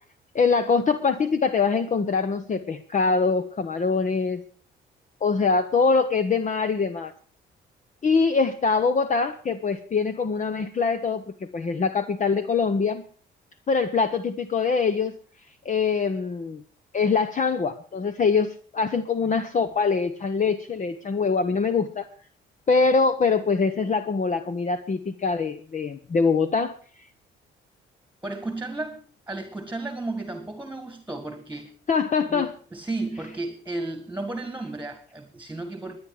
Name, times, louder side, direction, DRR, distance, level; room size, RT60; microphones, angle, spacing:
voice 1, 0.3-4.4 5.2-7.1 8.0-11.2 11.5-13.0 13.7-15.2 15.6-16.6 16.9-22.1 22.7-26.8 31.9-32.5, left 4 dB, 40° left, 10 dB, 1.0 m, -23 dB
voice 2, 28.2-31.7 32.3-36.0, right 2 dB, 10° right, 8 dB, 1.8 m, -33 dB
22.0 x 9.7 x 4.9 m, 0.43 s
cardioid pair, 90°, 20 cm